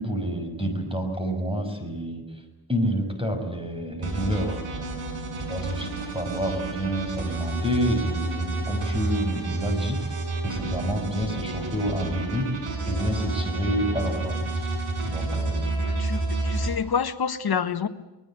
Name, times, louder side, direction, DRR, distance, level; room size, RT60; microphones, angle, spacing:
voice 1, 0.0-2.2 2.7-4.9 5.4-10.1 10.4-14.6 15.0-15.7, equal, 10° right, 6 dB, 6.2 m, -29 dB
sound 1, 4.0-16.7, right 2 dB, 75° right, 7.0 m, -29 dB
voice 2, 15.8-17.9, left 6 dB, 50° left, 9 dB, 1.6 m, -28 dB
24.0 x 21.0 x 9.0 m, 1.0 s
wide cardioid pair, 125°, 50 cm